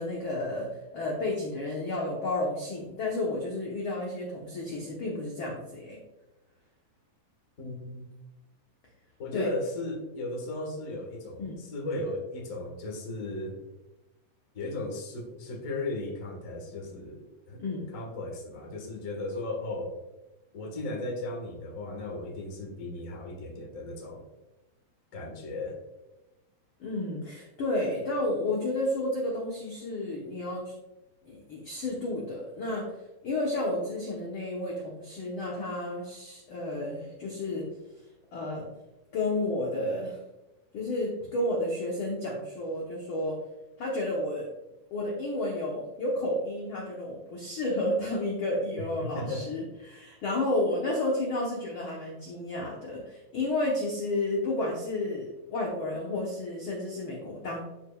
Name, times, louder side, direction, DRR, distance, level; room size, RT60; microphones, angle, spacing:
voice 1, 0.0-6.0 9.3-9.5 11.4-11.6 17.6-17.8 26.8-30.7 31.2-32.9 33.2-37.7 38.3-38.7 39.1-40.2 40.7-43.4 43.8-44.5 44.9-57.6, left 1 dB, 75° left, -2 dB, 1.2 m, -31 dB
voice 2, 7.6-8.1 9.2-13.6 14.5-17.6 17.9-20.0 20.5-24.2 25.1-25.8 48.8-49.5, left 2 dB, 45° left, 0 dB, 1.0 m, -36 dB
12.0 x 4.9 x 2.4 m, 0.99 s
omnidirectional pair, 4.0 m